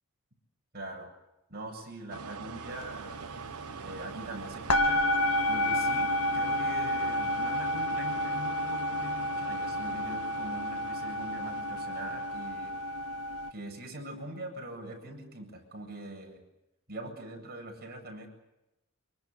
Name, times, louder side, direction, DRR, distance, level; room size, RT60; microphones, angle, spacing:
voice 1, 0.7-1.1 1.5-3.2 3.8-5.0 5.4-12.7 13.5-16.4 16.9-18.3, right 1 dB, 45° right, 2 dB, 7.9 m, -43 dB
sound 1, 2.1-13.3, right 5 dB, 90° right, 1.4 m, -43 dB
sound 2, 2.8-3.0 3.2-4.3 4.7-13.5, left 1 dB, 85° left, 1.9 m, -30 dB
26.5 x 24.0 x 8.2 m, 0.93 s
head